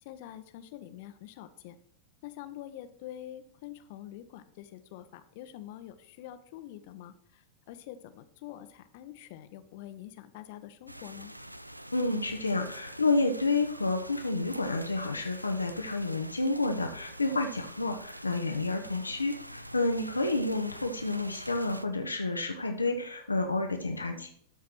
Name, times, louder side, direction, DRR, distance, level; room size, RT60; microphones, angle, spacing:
voice 1, 0.0-1.8 2.2-11.3 19.0-19.2 24.0-24.3, left 12 dB, 50° left, 10 dB, 0.9 m, -46 dB
sound 1, 10.9-21.9, right 1 dB, 90° right, 0.4 m, -46 dB
voice 2, 11.9-24.3, left 3 dB, 80° left, 5 dB, 0.9 m, -30 dB
12.5 x 4.7 x 6.0 m, 0.65 s
figure-of-eight pair, 90°, 0 cm